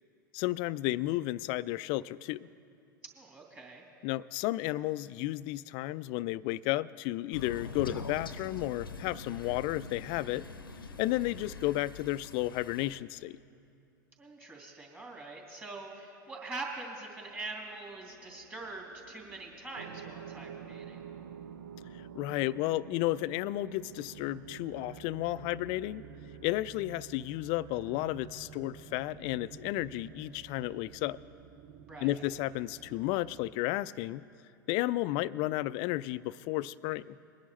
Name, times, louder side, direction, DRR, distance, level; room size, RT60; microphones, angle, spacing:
voice 1, 0.3-2.5 4.0-10.4 11.0-13.4 21.9-26.0 26.4-31.2 32.0-34.2 34.7-37.2, left 17 dB, 45° left, 18 dB, 0.4 m, -33 dB
voice 2, 3.1-3.8 14.2-21.0 31.9-32.2, right 2 dB, 15° right, -1 dB, 3.0 m, -43 dB
Crow, 7.3-13.0, left 4 dB, 90° left, 0.7 m, -43 dB
sound 1, 17.3-33.5, right 7 dB, 40° right, 0.7 m, -53 dB
sound 2, 19.7-28.9, right 8 dB, 75° right, 0.6 m, -49 dB
21.5 x 10.5 x 3.2 m, 2.5 s
hypercardioid pair, 90°, 11 cm